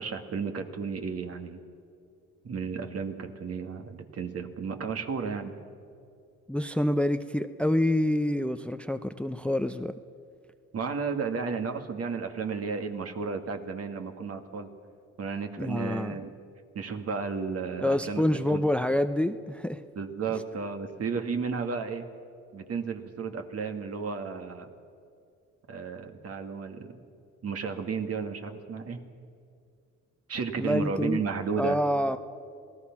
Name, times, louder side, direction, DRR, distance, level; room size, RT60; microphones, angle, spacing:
voice 1, 0.0-1.6 2.4-5.6 10.7-14.7 15.2-16.3 16.7-18.2 18.5-18.7 20.0-22.1 22.5-24.7 25.7-27.0 27.4-29.0 30.3-31.8, right 5 dB, 50° right, 6 dB, 2.1 m, -33 dB
voice 2, 6.5-9.9 15.6-16.2 17.8-19.8 30.6-31.2 31.6-32.2, left 1 dB, 5° left, 11 dB, 0.6 m, -27 dB
27.0 x 18.0 x 6.0 m, 2.3 s
cardioid pair, 90°, 30 cm